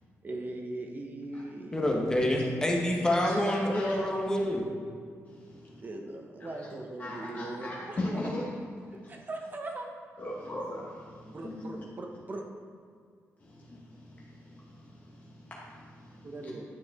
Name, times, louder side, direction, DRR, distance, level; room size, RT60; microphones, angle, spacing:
voice 1, 0.2-2.3 5.8-8.2 8.9-9.9 11.3-12.4 16.2-16.6, right 2 dB, 35° right, 2 dB, 0.9 m, -40 dB
voice 2, 1.7-4.6, left 1 dB, 15° left, 0 dB, 1.0 m, -27 dB
voice 3, 3.7-4.1 5.3-5.8 6.5-6.7 7.0-8.5 10.2-11.7 13.4-16.5, left 1 dB, 30° left, -6 dB, 1.2 m, -40 dB
9.5 x 4.7 x 3.6 m, 2.2 s
cardioid pair, 120°, 5 cm